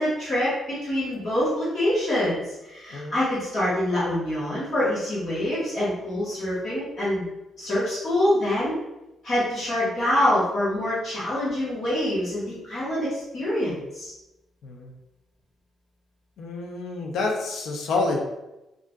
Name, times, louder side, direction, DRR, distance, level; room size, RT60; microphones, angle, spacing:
voice 1, 0.0-7.3 7.6-8.7 9.2-13.1 13.3-14.1, left 1 dB, 35° left, -10 dB, 1.1 m, -25 dB
voice 2, 16.4-18.3, left 3 dB, 65° left, 1 dB, 0.5 m, -28 dB
3.7 x 2.4 x 2.2 m, 0.97 s
cardioid pair, 175°, 0 cm